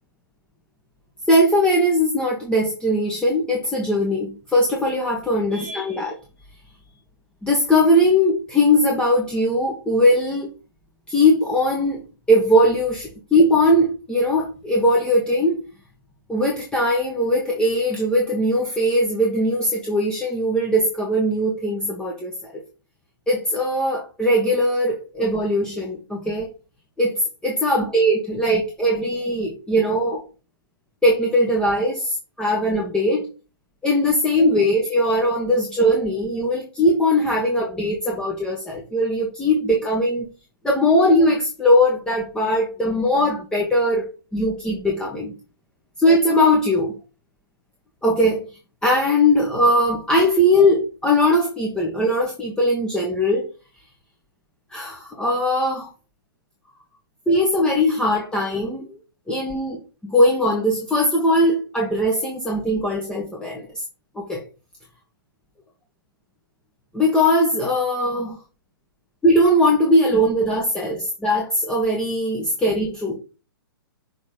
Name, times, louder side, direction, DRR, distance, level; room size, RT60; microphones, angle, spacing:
voice 1, 1.3-6.2 7.4-10.5 11.1-12.0 12.3-15.6 16.3-22.6 23.3-26.5 27.0-30.2 31.0-33.3 33.8-40.3 40.6-45.3 46.0-46.9 48.0-48.5 48.8-53.5 54.7-55.9 57.3-59.0 59.3-63.8 64.1-64.4 66.9-68.4 69.2-73.1, left 1 dB, 5° left, -2 dB, 1.2 m, -20 dB
6.5 x 3.7 x 5.0 m, 0.33 s
figure-of-eight pair, 125°, 13 cm